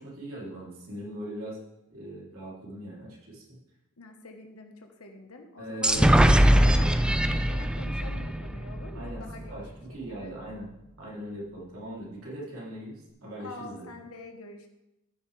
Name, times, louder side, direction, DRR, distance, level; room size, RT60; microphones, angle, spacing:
voice 1, 0.0-1.6 1.9-3.6 5.6-6.1 6.6-7.0 8.9-13.9, right 1 dB, 75° right, -5 dB, 3.1 m, -40 dB
voice 2, 4.0-6.9 7.3-9.6 10.1-10.3 13.4-14.7, left 2 dB, 75° left, 4 dB, 1.2 m, -45 dB
sound 1, 5.8-9.5, equal, 5° right, 0.4 m, -22 dB
14.0 x 6.9 x 3.3 m, 0.90 s
head